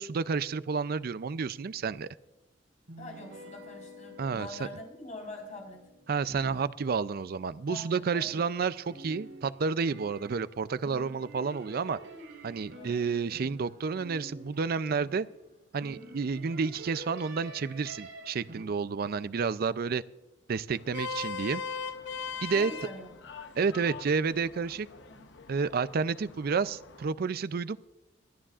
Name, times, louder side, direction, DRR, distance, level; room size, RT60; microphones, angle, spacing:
voice 1, 0.0-2.1 4.2-4.7 6.1-12.0 12.4-15.3 15.7-20.0 20.5-21.6 22.4-22.7 23.6-24.9 25.5-27.8, right 5 dB, 55° right, 16 dB, 0.4 m, -30 dB
sound 1, 2.9-7.2 7.7-15.4 15.8-18.6, right 2 dB, 80° right, 4.8 m, -48 dB
voice 2, 3.0-5.9 7.7-8.4 12.7-13.1 22.5-23.1 25.1-25.3, left 2 dB, 40° left, 1 dB, 4.3 m, -44 dB
sound 2, 5.6-6.7 6.9-7.0 8.7-8.8 9.0-9.4, equal, 10° right, 2.4 m, -51 dB
Vehicle horn car horn honking, 20.7-27.1, left 5 dB, 70° left, 0.9 m, -40 dB
27.0 x 10.0 x 2.4 m, 1.0 s
head